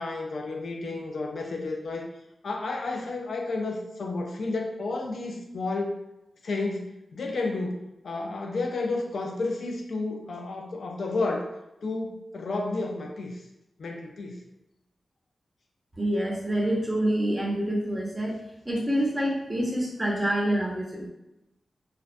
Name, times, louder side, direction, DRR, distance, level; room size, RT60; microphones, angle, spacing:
voice 1, 0.0-2.1 2.4-5.9 6.4-11.5 11.8-13.4 13.8-14.4, left 3 dB, 75° left, 1 dB, 0.3 m, -31 dB
voice 2, 16.0-18.4 18.7-21.1, right 1 dB, 15° right, -4 dB, 0.6 m, -27 dB
2.3 x 2.1 x 2.4 m, 0.91 s
wide cardioid pair, 125°, 0 cm